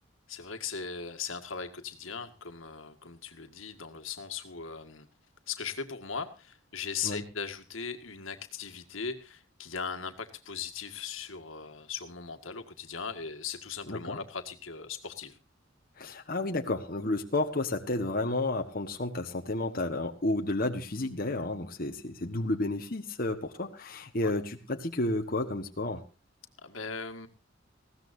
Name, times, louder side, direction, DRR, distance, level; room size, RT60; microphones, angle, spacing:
voice 1, 0.3-5.1 5.5-15.4 24.2-24.3 26.6-27.3, left 6 dB, 90° left, 6 dB, 1.9 m, -39 dB
voice 2, 13.9-14.2 16.0-26.0, left 2 dB, 45° left, 4 dB, 1.3 m, -31 dB
20.0 x 16.0 x 2.7 m, 0.32 s
head